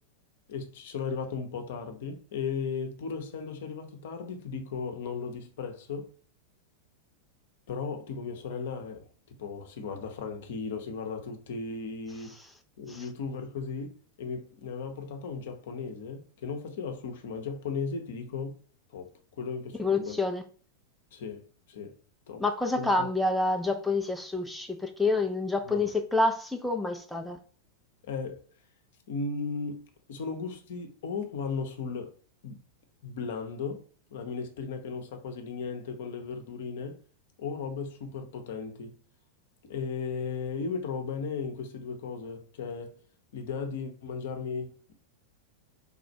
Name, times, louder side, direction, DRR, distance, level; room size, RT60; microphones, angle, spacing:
voice 1, 0.5-6.1 7.7-9.1 9.4-12.3 12.8-13.9 14.2-18.5 18.9-20.2 21.1-21.4 21.7-21.9 22.3-22.4 22.8-23.1 25.6-25.9 28.0-28.4 29.1-29.8 30.1-32.2 32.4-32.6 33.0-33.8 34.1-37.0 37.4-39.0 39.6-43.0 43.3-44.9, left 5 dB, 55° left, 0.7 m, -36 dB
voice 2, 19.8-20.4 22.4-27.4, left 2 dB, 5° left, 0.5 m, -28 dB
3.6 x 2.4 x 4.2 m
figure-of-eight pair, 90°, 0 cm